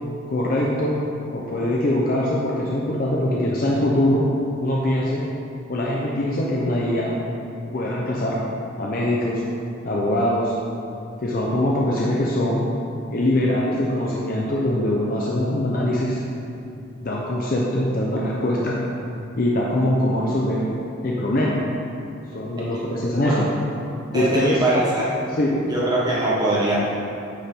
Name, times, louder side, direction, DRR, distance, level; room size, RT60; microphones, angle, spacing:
voice 1, 0.3-0.9 1.3-4.2 4.6-5.2 5.7-7.1 7.7-8.4 8.8-9.4 9.8-10.5 11.2-12.6 13.1-16.2 17.0-18.8 19.4-20.6 21.0-21.6 22.3-23.5 24.1-24.6 25.4-25.5, left 1 dB, 45° left, -4 dB, 0.6 m, -22 dB
voice 2, 24.1-25.1 25.7-26.8, right 2 dB, 20° right, -7 dB, 1.3 m, -22 dB
9.1 x 3.5 x 4.4 m, 2.7 s
head